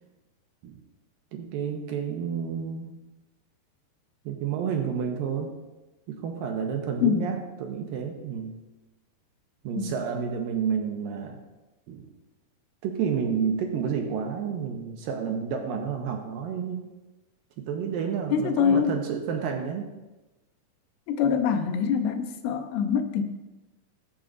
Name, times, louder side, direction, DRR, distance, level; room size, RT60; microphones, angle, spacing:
voice 1, 1.3-3.0 4.3-5.6 6.1-8.6 9.6-11.4 11.9-12.1 12.8-16.9 17.6-19.9, right 7 dB, 75° right, 3 dB, 2.3 m, -30 dB
voice 2, 18.3-19.0 21.1-23.2, left 7 dB, 80° left, 7 dB, 2.8 m, -24 dB
20.0 x 7.3 x 2.6 m, 1.1 s
omnidirectional pair, 4.6 m